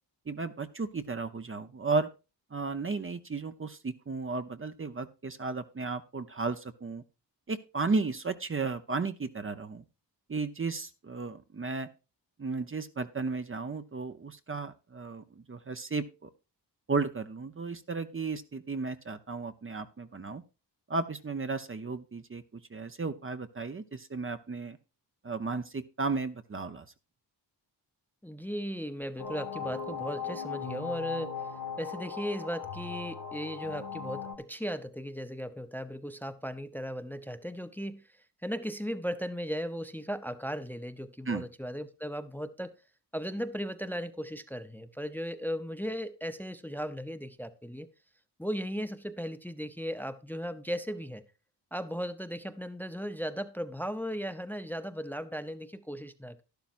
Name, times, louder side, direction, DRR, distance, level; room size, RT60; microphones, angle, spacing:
voice 1, 0.3-2.1 2.5-7.0 7.5-9.8 10.3-11.9 12.4-16.3 16.9-20.4 20.9-24.8 25.2-26.9 41.3-41.5, right 4 dB, 30° right, 9 dB, 0.8 m, -34 dB
voice 2, 28.2-38.0 38.4-42.7 43.1-47.9 48.4-51.2 51.7-56.4, equal, 5° left, 9 dB, 0.8 m, -37 dB
sound 1, 29.2-34.3, left 6 dB, 85° left, 2.9 m, -38 dB
12.0 x 11.5 x 2.6 m, 0.30 s
wide cardioid pair, 95°, 42 cm